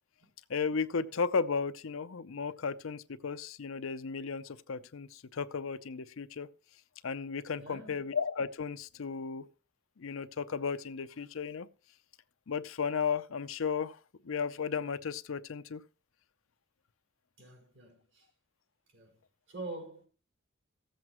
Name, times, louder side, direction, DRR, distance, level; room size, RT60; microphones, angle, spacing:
voice 1, 0.5-6.5 7.0-9.5 10.0-11.7 12.5-14.0 14.2-15.8, left 5 dB, 80° left, 0.6 m, -34 dB
voice 2, 7.6-8.1 17.4-18.3 18.9-19.2 19.5-20.1, right 2 dB, 65° right, 4.8 m, -45 dB
16.0 x 7.8 x 3.0 m
head